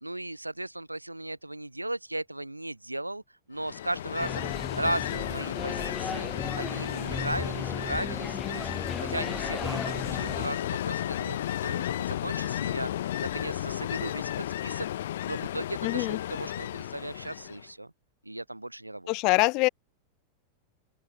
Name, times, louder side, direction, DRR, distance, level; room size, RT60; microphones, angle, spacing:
voice 1, 0.0-3.2 3.5-4.5 4.7-6.3 6.6-8.7 9.0-17.9 18.2-19.1, right 1 dB, 85° right, 0.6 m, -36 dB
Ocean, 3.6-17.7, left 12 dB, 60° left, 1.6 m, -33 dB
sound 1, 4.2-10.5, left 5 dB, 15° left, 0.7 m, -36 dB
voice 2, 15.8-16.2 19.1-19.7, left 27 dB, 40° left, 0.9 m, -24 dB
open air
figure-of-eight pair, 90°, 0 cm